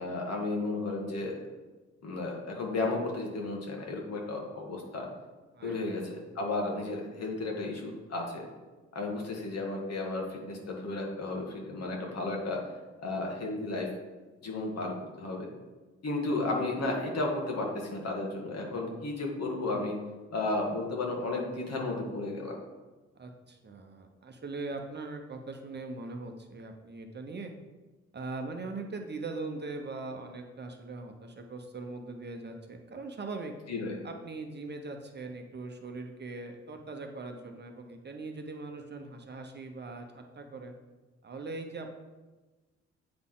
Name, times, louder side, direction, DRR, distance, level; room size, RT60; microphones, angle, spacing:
voice 1, 0.0-1.4 2.0-5.1 5.6-8.5 8.9-12.6 13.0-13.9 14.4-15.5 16.0-20.0 20.3-22.6 33.7-34.0, left 2 dB, 60° left, 0 dB, 1.7 m, -33 dB
voice 2, 5.5-6.0 23.1-27.5 28.1-33.5 34.0-40.7 41.2-41.9, right 3 dB, 35° right, 4 dB, 0.8 m, -41 dB
8.6 x 4.1 x 3.8 m, 1.2 s
cardioid pair, 85°, 29 cm